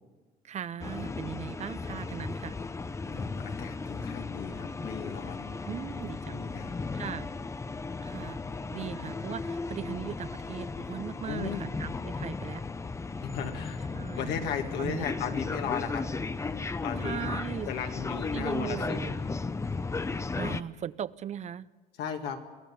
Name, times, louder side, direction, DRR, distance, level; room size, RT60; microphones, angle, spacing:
voice 1, 0.4-2.6 5.7-6.4 6.9-7.3 8.0-8.4 8.7-12.6 13.9-14.3 14.8-15.1 17.0-17.7 18.3-19.2 20.3-21.7, right 9 dB, 45° right, 17 dB, 0.5 m, -38 dB
sound 1, 0.8-20.6, left 3 dB, 15° left, 0.6 m, -35 dB
voice 2, 3.1-5.6 6.3-7.0 8.8-9.1 11.2-11.7 13.2-13.8 14.2-16.0 16.8-17.2 17.7-19.2 22.0-22.4, left 7 dB, 85° left, 4 dB, 2.1 m, -36 dB
23.0 x 16.0 x 7.1 m, 1.3 s
cardioid pair, 110°, 17 cm